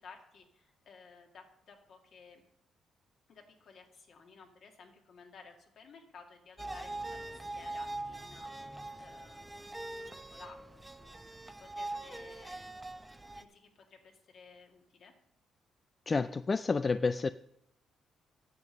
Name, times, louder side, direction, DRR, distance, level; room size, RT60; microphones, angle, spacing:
voice 1, 0.0-2.4 3.3-9.8 10.0-12.8 13.3-15.1, left 5 dB, 60° left, 2 dB, 2.0 m, -56 dB
sound 1, 6.6-13.4, right 2 dB, 15° right, 0.7 m, -43 dB
voice 2, 16.1-17.3, left 4 dB, 30° left, 13 dB, 0.3 m, -29 dB
9.6 x 7.4 x 6.7 m, 0.78 s
cardioid pair, 90°, 0 cm